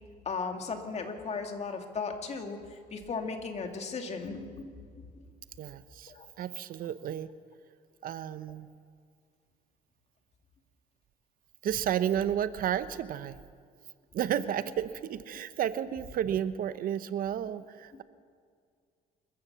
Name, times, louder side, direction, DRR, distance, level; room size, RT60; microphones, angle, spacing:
voice 1, 0.3-4.8 6.1-6.3, left 4 dB, 40° left, 4 dB, 2.4 m, -36 dB
voice 2, 5.6-7.3 8.0-8.7 11.6-13.4 14.1-18.0, right 10 dB, 60° right, 13 dB, 0.8 m, -32 dB
26.5 x 15.0 x 6.9 m, 2.1 s
cardioid pair, 110°, 17 cm